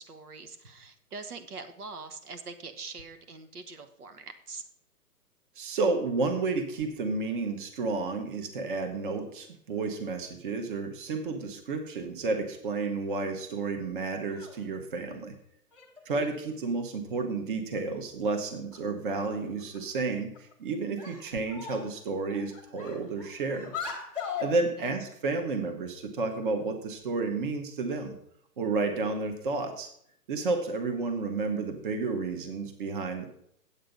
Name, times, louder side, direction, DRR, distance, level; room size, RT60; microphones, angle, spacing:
voice 1, 0.0-4.6 24.8-24.9, right 4 dB, 70° right, 9 dB, 1.4 m, -43 dB
voice 2, 5.6-15.3 16.0-23.7 24.4-28.1 28.6-29.9 30.3-33.3, right 3 dB, 35° right, 6 dB, 1.1 m, -31 dB
sound 1, 14.2-14.6 15.7-16.6 17.7-17.8 18.3-18.4 18.7-18.8 19.1-19.8 20.3-20.5 21.0-22.0 22.3-24.6, left 6 dB, 5° right, 0.6 m, -40 dB
8.7 x 8.0 x 5.2 m, 0.70 s
hypercardioid pair, 160°, 46 cm